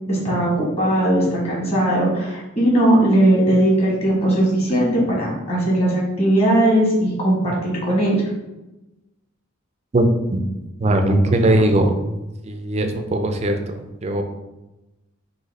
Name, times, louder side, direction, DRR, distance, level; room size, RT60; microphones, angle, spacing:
voice 1, 0.1-8.2, right 1 dB, 30° left, -4 dB, 1.4 m, -18 dB
voice 2, 9.9-10.4 10.8-12.0 12.4-14.2, right 1 dB, 30° right, 5 dB, 0.4 m, -19 dB
4.0 x 2.7 x 4.0 m, 1.0 s
head